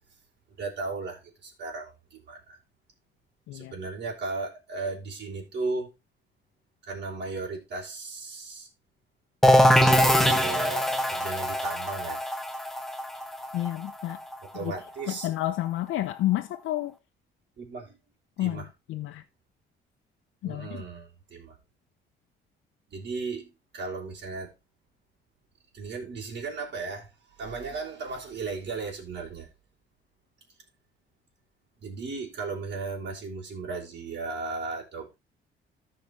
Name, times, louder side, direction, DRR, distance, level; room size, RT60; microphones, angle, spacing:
voice 1, 0.6-2.6 3.5-5.9 6.9-8.7 9.8-12.2 14.4-15.3 17.6-18.0 18.4-18.7 20.4-21.6 22.9-24.5 25.7-29.5 31.8-35.2, right 3 dB, 60° right, 3.6 m, -36 dB
sound 1, 9.4-15.0, equal, ahead, 0.9 m, -23 dB
voice 2, 13.5-14.2 14.6-14.7 15.1-16.9 18.4-19.2 20.4-20.7, left 15 dB, 85° left, 0.7 m, -30 dB
14.5 x 5.0 x 3.2 m
cardioid pair, 90°, 20 cm